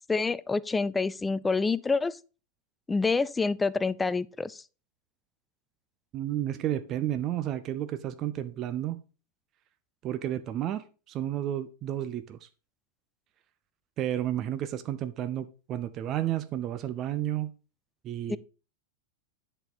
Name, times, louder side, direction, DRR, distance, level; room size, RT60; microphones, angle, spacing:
voice 1, 0.1-2.2 2.9-4.6 18.3-18.4, left 4 dB, 10° left, 0.4 m, -27 dB
voice 2, 6.1-9.0 10.0-12.4 14.0-17.5 18.0-18.4, right 12 dB, 35° right, 0.6 m, -31 dB
10.0 x 4.4 x 5.1 m
figure-of-eight pair, 90°, 0 cm